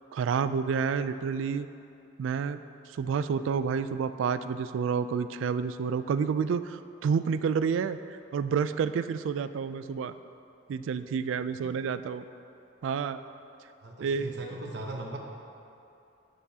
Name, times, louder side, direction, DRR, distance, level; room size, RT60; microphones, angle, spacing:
voice 1, 0.1-1.7 2.2-2.6 2.9-10.1 10.7-12.2 12.8-13.2 14.0-14.3, right 6 dB, 85° right, 14 dB, 0.3 m, -29 dB
voice 2, 13.8-15.2, right 2 dB, 60° right, 1 dB, 0.9 m, -39 dB
11.0 x 6.8 x 2.8 m, 2.7 s
head